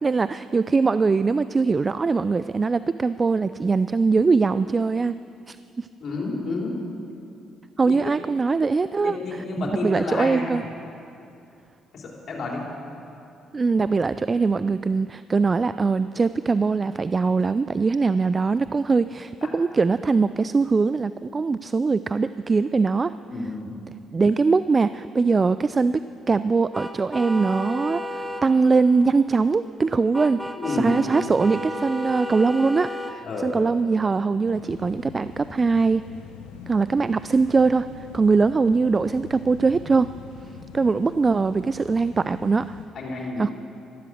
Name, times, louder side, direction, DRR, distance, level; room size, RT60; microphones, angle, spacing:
voice 1, 0.0-5.2 5.5-5.9 7.8-10.6 13.5-23.1 24.1-36.0 36.7-37.9 38.1-40.1 40.7-42.8 43.4-43.5, right 4 dB, 35° right, 14 dB, 0.4 m, -22 dB
voice 2, 6.0-6.8 7.9-8.1 9.0-10.5 11.9-12.6 23.3-23.8 30.6-31.3 33.2-33.7 42.9-43.5, left 2 dB, 60° left, -2 dB, 3.9 m, -30 dB
sound 1, 26.7-28.5 30.1-33.2, left 1 dB, 10° right, 1.3 m, -32 dB
sound 2, 34.5-42.9, left 5 dB, 85° left, 1.1 m, -43 dB
13.5 x 12.5 x 7.9 m, 2.6 s
hypercardioid pair, 55°, 0 cm